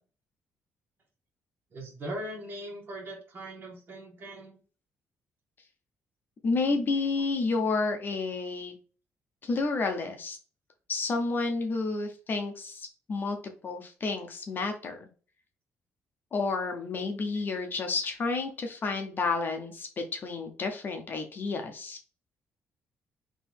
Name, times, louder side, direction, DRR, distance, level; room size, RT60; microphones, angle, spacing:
voice 1, 1.7-4.6, right 1 dB, 40° right, -3 dB, 1.6 m, -40 dB
voice 2, 6.4-8.7 9.4-10.4 10.9-13.4 13.6-15.0 16.3-22.0, left 3 dB, 40° left, 4 dB, 0.8 m, -30 dB
3.8 x 3.0 x 4.6 m, 0.38 s
cardioid pair, 140°, 5 cm